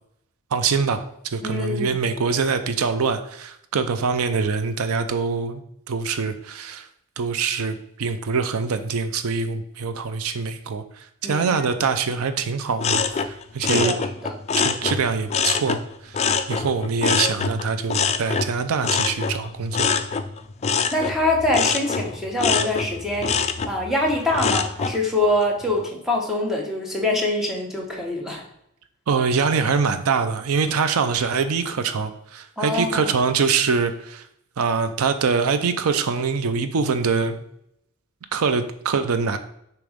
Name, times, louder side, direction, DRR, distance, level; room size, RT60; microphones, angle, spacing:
voice 1, 0.5-5.6 5.9-6.9 7.2-14.0 14.5-16.2 16.5-19.9 29.1-34.2 34.6-37.4 38.3-39.4, right 5 dB, 80° right, 10 dB, 0.5 m, -24 dB
voice 2, 1.4-2.0 11.2-11.7 13.6-14.3 20.9-23.3 23.7-28.4 32.6-33.1, left 1 dB, ahead, -2 dB, 1.1 m, -24 dB
sound 1, 12.8-15.8 16.1-25.0 25.4-25.9, left 5 dB, 30° left, 0.3 m, -24 dB
6.8 x 3.0 x 5.0 m, 0.76 s
head